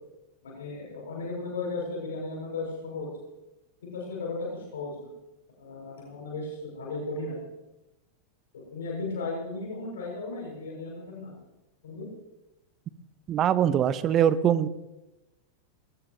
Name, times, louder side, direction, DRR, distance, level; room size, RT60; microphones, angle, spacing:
voice 1, 0.4-3.1 3.8-5.1 5.6-7.4 8.7-11.3 11.8-12.1, left 3 dB, 65° left, -3 dB, 7.2 m, -35 dB
voice 2, 13.3-14.7, right 9 dB, 30° right, 16 dB, 0.9 m, -22 dB
22.0 x 19.5 x 3.2 m, 0.98 s
figure-of-eight pair, 90°, 0 cm